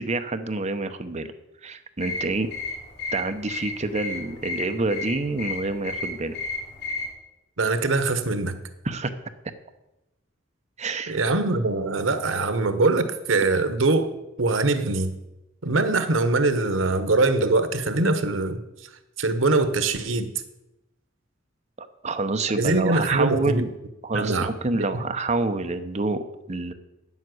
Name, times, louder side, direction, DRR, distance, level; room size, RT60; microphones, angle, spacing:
voice 1, 0.0-1.3 1.6-2.5 3.1-6.4 8.8-9.1 10.8-11.2 21.8-23.7 24.0-26.7, right 3 dB, 35° right, 9 dB, 0.8 m, -27 dB
sound 1, 2.0-7.1, left 3 dB, 60° left, 3.7 m, -33 dB
voice 2, 7.6-8.6 11.1-14.1 14.4-15.1 15.6-18.6 19.2-20.3 22.6-23.6 24.1-24.5, right 3 dB, 90° right, 10 dB, 1.1 m, -22 dB
9.5 x 7.3 x 7.8 m, 0.96 s
head